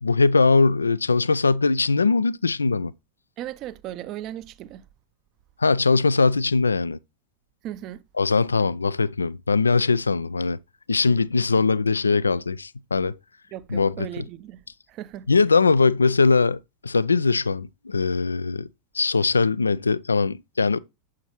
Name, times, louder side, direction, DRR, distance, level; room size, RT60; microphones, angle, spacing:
voice 1, 0.0-2.9 5.6-7.0 8.2-10.6 10.9-13.2 13.7-13.9 15.3-18.7 18.9-20.8, left 4 dB, 75° left, 0.4 m, -21 dB
voice 2, 3.4-4.9 7.6-8.0 13.5-15.3, right 12 dB, 35° right, 0.7 m, -37 dB
9.5 x 7.9 x 3.0 m
figure-of-eight pair, 90°, 0 cm